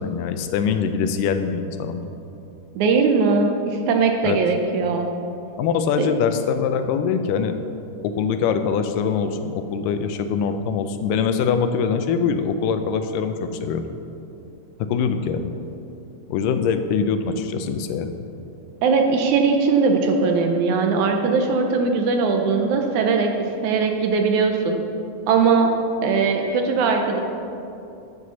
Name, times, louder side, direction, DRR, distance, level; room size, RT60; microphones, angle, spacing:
voice 1, 0.0-2.0 4.2-4.4 5.6-7.6 8.0-13.8 14.8-15.5 16.3-18.1, left 6 dB, 85° left, 8 dB, 2.3 m, -23 dB
voice 2, 2.8-5.1 6.0-6.1 18.8-23.3 23.6-24.8 25.3-25.7 26.0-27.2, right 4 dB, 75° right, 4 dB, 2.0 m, -20 dB
8.1 x 7.4 x 6.9 m, 2.7 s
omnidirectional pair, 3.8 m